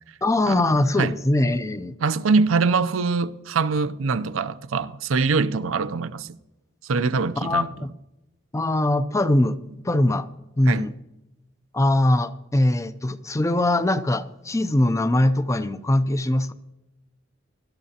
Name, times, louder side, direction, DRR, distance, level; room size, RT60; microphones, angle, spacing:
voice 1, 0.2-1.9 7.4-7.9 8.5-9.6 9.8-10.3 10.6-10.9 11.7-16.5, left 1 dB, 15° left, 0.5 m, -22 dB
voice 2, 2.0-6.3 6.8-7.7 10.7-10.9, right 4 dB, 80° right, 0.5 m, -23 dB
19.5 x 12.0 x 2.8 m
head